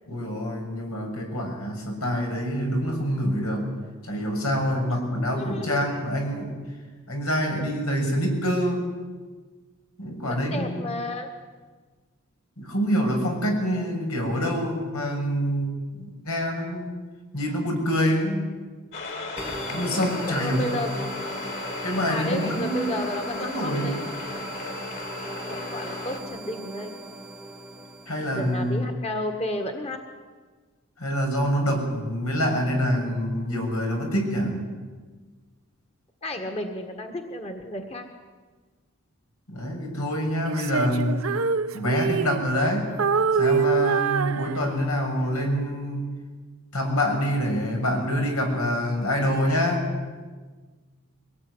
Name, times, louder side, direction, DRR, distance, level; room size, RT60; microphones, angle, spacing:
voice 1, 0.1-3.7 4.0-6.6 7.1-8.9 10.0-10.8 12.6-16.9 17.3-18.5 19.7-20.8 21.8-23.0 23.3-24.0 28.1-29.0 31.0-34.7 39.5-41.2 41.7-42.9 43.4-46.1 46.7-49.9, equal, 90° left, 2 dB, 6.9 m, -26 dB
voice 2, 4.9-5.9 10.2-11.3 19.9-21.0 22.0-24.0 25.5-26.9 28.3-30.0 36.2-38.1, left 1 dB, 30° left, 5 dB, 1.8 m, -33 dB
sound 1, 18.9-26.2, left 3 dB, 55° left, 4.4 m, -35 dB
sound 2, 19.4-28.7, right 1 dB, 5° right, 1.3 m, -38 dB
Female singing, 40.4-42.7 43.0-45.1, right 5 dB, 70° right, 0.8 m, -25 dB
23.0 x 18.5 x 9.8 m, 1.4 s
head